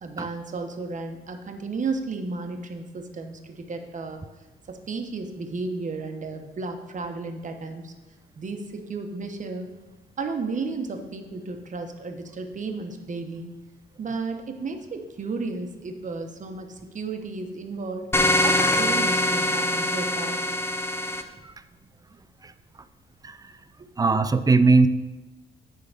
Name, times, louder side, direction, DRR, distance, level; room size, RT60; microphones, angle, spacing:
voice 1, 0.0-4.2 4.7-7.9 8.3-9.7 10.2-13.5 14.0-18.1 18.4-20.5, right 3 dB, 40° right, 5 dB, 1.1 m, -33 dB
sound 1, 18.1-21.2, left 1 dB, 10° left, 0.7 m, -23 dB
voice 2, 24.0-24.9, right 3 dB, 20° right, 12 dB, 0.5 m, -20 dB
9.6 x 3.8 x 6.7 m, 1.1 s
cardioid pair, 90°, 20 cm